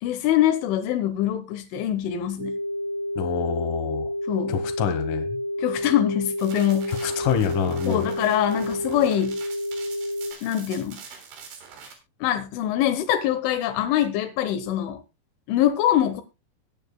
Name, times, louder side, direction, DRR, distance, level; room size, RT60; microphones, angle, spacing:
voice 1, 0.0-2.6 4.3-4.6 5.6-7.1 7.9-9.4 10.4-11.0 12.2-15.0 15.5-16.2, left 11 dB, 90° left, 3.6 m, -24 dB
sound 1, 2.4-10.3, left 1 dB, 50° right, 3.7 m, -30 dB
voice 2, 3.2-4.1 4.5-5.3 6.9-8.1, left 8 dB, 65° left, 2.2 m, -26 dB
sound 2, 6.4-11.9, right 5 dB, 85° right, 5.9 m, -44 dB
22.0 x 8.9 x 2.2 m
omnidirectional pair, 5.3 m